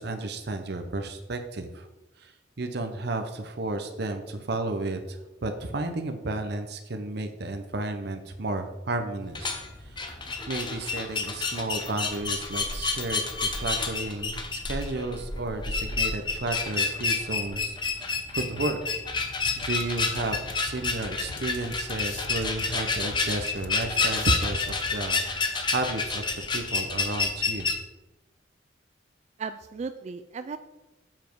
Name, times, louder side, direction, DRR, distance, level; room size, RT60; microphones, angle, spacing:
voice 1, 0.0-1.9 2.2-2.3 2.6-10.0 10.5-18.8 19.6-27.7, right 2 dB, 60° right, 6 dB, 0.8 m, -32 dB
sound 1, 9.2-27.7, left 4 dB, 25° left, 0.9 m, -29 dB
sound 2, 19.5-25.3, left 4 dB, 80° left, 0.6 m, -42 dB
voice 2, 29.4-30.6, right 5 dB, 35° right, 10 dB, 0.3 m, -36 dB
7.5 x 7.0 x 4.6 m, 1.0 s
head